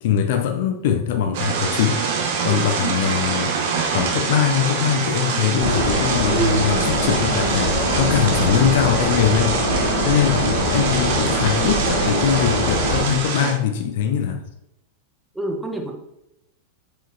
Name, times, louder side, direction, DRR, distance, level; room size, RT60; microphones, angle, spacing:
voice 1, 0.0-2.0 2.4-3.6 3.9-9.6 10.0-14.5, left 8 dB, 55° left, 7 dB, 0.5 m, -22 dB
sound 1, 1.3-13.5, right 5 dB, 50° right, 1.1 m, -25 dB
sound 2, 5.6-13.0, equal, 70° left, 1.5 m, -22 dB
voice 2, 15.3-15.9, right 1 dB, 5° right, 1 dB, 1.0 m, -28 dB
8.7 x 4.9 x 2.8 m, 0.85 s
figure-of-eight pair, 90°, 0 cm